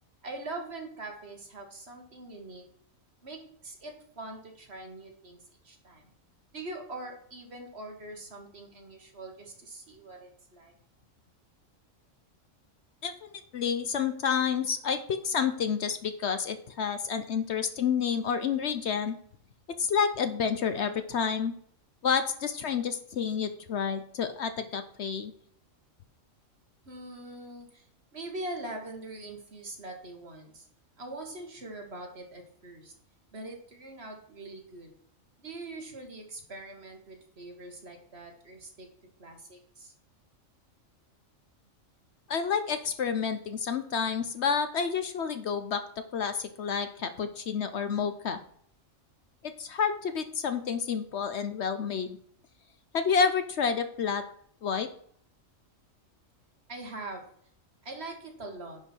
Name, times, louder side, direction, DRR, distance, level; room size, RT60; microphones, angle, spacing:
voice 1, 0.2-2.6 3.2-5.4 5.6-6.1 6.5-10.7 26.8-27.9 28.1-30.7 31.0-32.9 33.3-34.9 35.4-38.9 39.2-39.9 56.7-57.2 57.8-58.8, right 2 dB, 50° right, 2 dB, 2.0 m, -42 dB
voice 2, 13.0-19.1 19.8-21.5 22.0-25.3 42.3-45.8 46.1-48.4 49.4-52.2 52.9-54.2 54.6-54.9, left 6 dB, 60° left, 10 dB, 1.0 m, -29 dB
10.0 x 5.8 x 4.5 m, 0.63 s
omnidirectional pair, 1.4 m